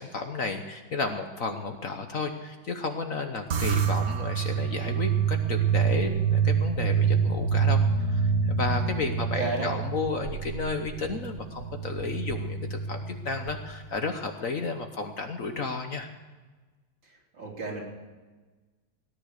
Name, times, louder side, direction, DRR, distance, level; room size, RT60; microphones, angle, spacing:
voice 1, 0.0-16.1, left 4 dB, 50° left, 6 dB, 1.2 m, -33 dB
sound 1, 3.5-14.1, right 6 dB, 50° right, 1.1 m, -27 dB
voice 2, 9.2-9.7 17.0-17.8, right 2 dB, 70° right, -3 dB, 4.5 m, -33 dB
18.0 x 10.0 x 6.6 m, 1.3 s
omnidirectional pair, 2.1 m